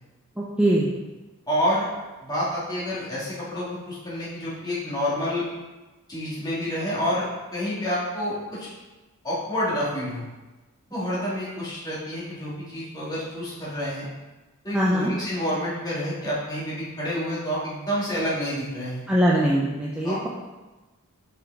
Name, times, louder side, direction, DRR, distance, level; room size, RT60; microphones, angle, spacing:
voice 1, 0.4-0.9 14.7-15.1 19.1-20.3, right 1 dB, 5° right, -5 dB, 0.5 m, -22 dB
voice 2, 1.5-1.9 2.2-5.5 6.1-7.3 7.5-8.7 9.2-10.3 10.9-14.1 14.6-19.0 20.0-20.3, equal, 15° left, -9 dB, 2.0 m, -28 dB
6.0 x 5.0 x 3.4 m, 1.1 s
head